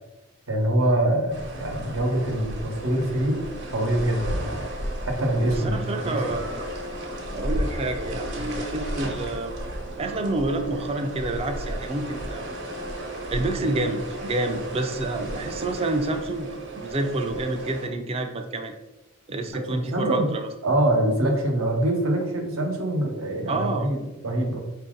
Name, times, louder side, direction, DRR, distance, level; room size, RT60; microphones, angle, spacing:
voice 1, 0.5-3.4 3.7-4.6 5.1-6.2 19.5-20.3 20.6-24.6, right 1 dB, 90° right, 2 dB, 1.0 m, -24 dB
sound 1, 1.3-17.9, right 1 dB, 55° right, 1.0 m, -34 dB
voice 2, 5.6-6.4 7.3-9.5 10.0-12.5 13.3-18.7 19.3-20.5 23.5-23.9, right 2 dB, 30° right, 5 dB, 0.4 m, -28 dB
5.0 x 2.7 x 3.7 m, 1.1 s
head